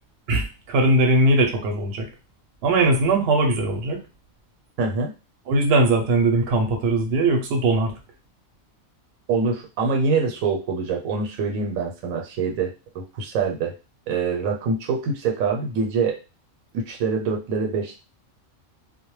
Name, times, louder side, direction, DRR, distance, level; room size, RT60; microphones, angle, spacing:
voice 1, 0.3-2.1 2.6-4.0 5.5-7.9, right 2 dB, 60° right, 3 dB, 0.8 m, -20 dB
voice 2, 4.8-5.1 9.3-13.7 14.1-16.2 16.7-18.0, right 4 dB, 85° right, 2 dB, 1.0 m, -25 dB
2.2 x 2.1 x 3.0 m, 0.30 s
omnidirectional pair, 1.4 m